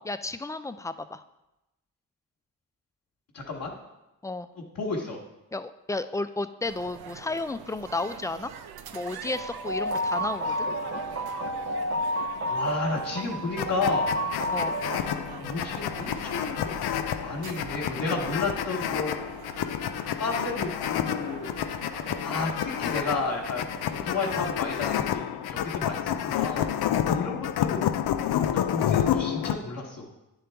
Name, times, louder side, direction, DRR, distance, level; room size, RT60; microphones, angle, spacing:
voice 1, 0.1-1.2 4.2-4.5 5.5-8.5 8.9-10.7 14.5-14.8, left 2 dB, 10° left, 11 dB, 0.3 m, -32 dB
voice 2, 3.3-3.7 4.7-5.2 12.5-14.2 15.4-16.8 17.2-19.1 20.2-21.6 22.0-26.7 27.0-27.8 28.5-30.1, left 3 dB, 55° left, -5 dB, 1.2 m, -32 dB
sound 1, 6.6-24.9, right 8 dB, 70° right, 0.6 m, -44 dB
sound 2, 9.3-15.0, equal, 40° right, 0.9 m, -30 dB
sound 3, 13.6-29.6, left 10 dB, 70° left, 0.5 m, -29 dB
9.9 x 3.9 x 3.4 m, 0.93 s
supercardioid pair, 50°, 40 cm